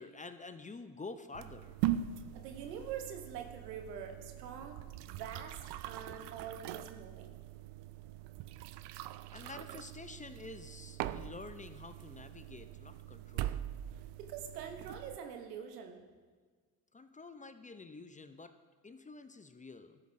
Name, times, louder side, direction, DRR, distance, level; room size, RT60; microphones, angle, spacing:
voice 1, 0.0-1.9 9.3-13.7 16.9-18.5 18.8-20.0, left 3 dB, 15° left, 10 dB, 0.5 m, -49 dB
sound 1, 1.3-15.2, right 12 dB, 60° right, 0.5 m, -42 dB
voice 2, 2.3-5.6 5.8-7.4 14.2-16.0, right 7 dB, 90° right, 5 dB, 0.9 m, -45 dB
13.5 x 7.3 x 2.6 m, 1.5 s
hypercardioid pair, 55°, 47 cm